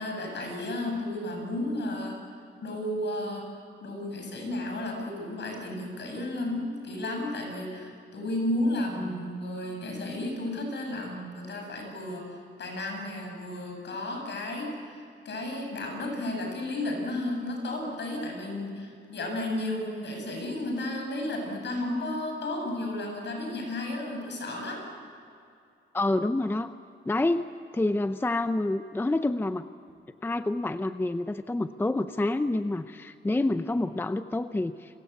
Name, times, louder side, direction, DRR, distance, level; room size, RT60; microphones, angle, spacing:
voice 1, 0.0-2.2 2.6-3.5 3.8-12.2 12.6-24.9, left 1 dB, 60° left, 2 dB, 7.7 m, -33 dB
voice 2, 25.9-26.7 27.1-29.7 30.2-35.0, left 2 dB, 10° left, 10 dB, 0.6 m, -28 dB
30.0 x 23.5 x 8.3 m, 2.5 s
wide cardioid pair, 160°, 20 cm